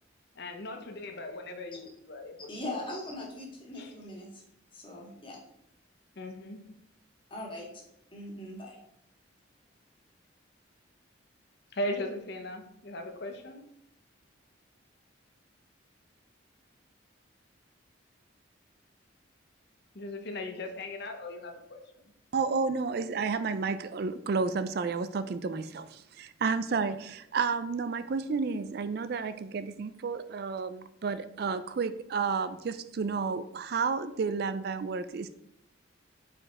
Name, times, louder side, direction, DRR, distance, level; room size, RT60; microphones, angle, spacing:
voice 1, 0.3-2.5 3.8-3.9 6.2-6.6 11.7-13.7 19.9-21.8 26.7-26.8, left 1 dB, 55° left, 0.8 m, -38 dB
voice 2, 2.5-4.4 4.7-5.3 7.3-7.7 8.1-8.8, left 1 dB, 25° left, 1.8 m, -40 dB
voice 3, 22.3-35.3, right 5 dB, 55° right, 0.4 m, -31 dB
5.1 x 4.9 x 4.7 m
head